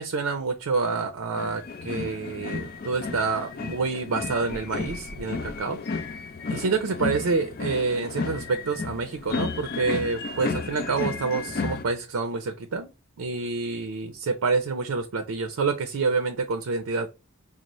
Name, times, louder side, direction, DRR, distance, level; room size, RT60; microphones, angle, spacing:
voice 1, 0.0-5.8 6.5-12.9 13.2-17.1, right 4 dB, 85° right, 7 dB, 0.5 m, -27 dB
sound 1, 1.4-11.8, left 4 dB, 45° left, 0.4 m, -33 dB
5.2 x 2.0 x 2.9 m, 0.27 s
head